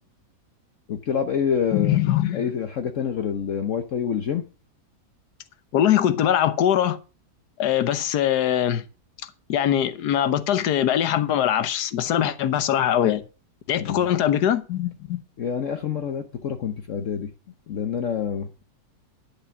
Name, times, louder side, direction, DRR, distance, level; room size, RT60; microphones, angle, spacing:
voice 1, 0.9-2.0 2.3-4.4 13.8-14.1 15.4-17.3 17.7-18.6, left 7 dB, 55° left, 1.1 m, -27 dB
voice 2, 1.7-2.5 5.7-7.0 7.6-8.8 9.5-13.2 13.7-15.2, left 10 dB, 75° left, 1.4 m, -22 dB
11.0 x 6.8 x 5.9 m
omnidirectional pair, 1.8 m